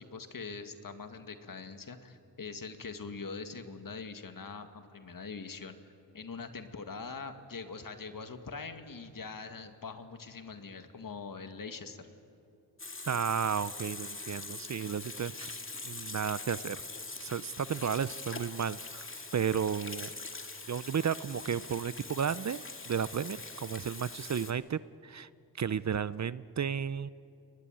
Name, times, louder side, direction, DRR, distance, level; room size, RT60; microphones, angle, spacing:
voice 1, 0.0-5.8 6.1-12.1, left 4 dB, 55° left, 7 dB, 2.1 m, -43 dB
Water tap faucet / Sink (filling or washing), 12.8-24.5, left 3 dB, 30° left, 2.3 m, -43 dB
voice 2, 13.1-15.5 15.8-16.8 17.2-19.1 19.3-20.1 20.7-25.3 25.6-27.1, right 7 dB, 45° right, 17 dB, 0.6 m, -33 dB
29.5 x 21.5 x 9.2 m, 2.7 s
cardioid pair, 65°, 40 cm